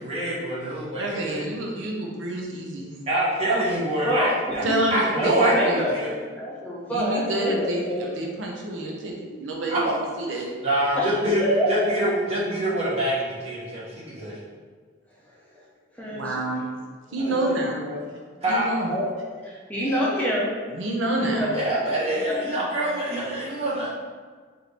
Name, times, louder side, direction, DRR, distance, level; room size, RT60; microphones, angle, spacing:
voice 1, 0.0-1.4 3.1-4.6 4.9-6.1 9.7-9.9 10.6-11.4 11.7-14.3 17.2-17.3 18.4-18.7 19.8-20.1 21.5-23.9, right 1 dB, 30° right, -8 dB, 1.1 m, -25 dB
voice 2, 1.0-2.9 4.6-5.8 6.9-9.9 10.2-10.5 16.1-16.7 17.1-17.8 18.5-18.9 20.7-21.6, right 1 dB, 80° right, 0 dB, 0.6 m, -28 dB
voice 3, 3.4-8.1 11.0-11.9 15.5-15.6 15.9-16.4 17.2-18.1 18.8-20.6 21.1-21.5 22.3-22.7, equal, 10° left, -6 dB, 0.6 m, -27 dB
4.3 x 2.6 x 3.3 m, 1.5 s
head